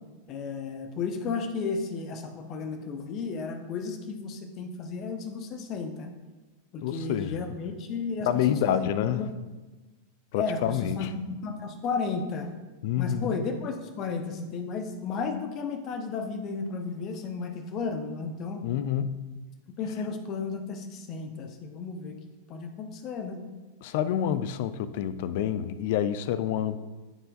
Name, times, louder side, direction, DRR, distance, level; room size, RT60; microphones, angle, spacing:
voice 1, 0.3-6.1 6.7-9.3 10.4-12.5 13.0-18.6 19.8-22.1 22.5-23.4, left 4 dB, 35° left, 6 dB, 0.8 m, -33 dB
voice 2, 6.8-7.4 8.3-9.2 10.3-11.1 12.8-13.4 18.6-19.3 23.8-26.8, left 10 dB, 50° left, 13 dB, 0.4 m, -28 dB
12.0 x 4.5 x 2.5 m, 1.2 s
figure-of-eight pair, 90°, 0 cm